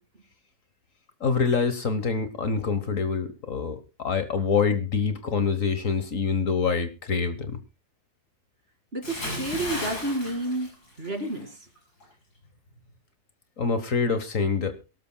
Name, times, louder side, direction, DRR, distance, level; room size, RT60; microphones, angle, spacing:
voice 1, 1.2-7.6 13.6-14.7, left 5 dB, 55° left, 10 dB, 1.5 m, -26 dB
voice 2, 8.9-11.7, right 1 dB, 35° right, 6 dB, 2.5 m, -31 dB
Bathtub (filling or washing) / Splash splatter, 9.0-11.4 11.8-12.0, left 1 dB, 70° left, 6.3 m, -35 dB
23.0 x 13.0 x 2.2 m, 0.29 s
omnidirectional pair, 1.7 m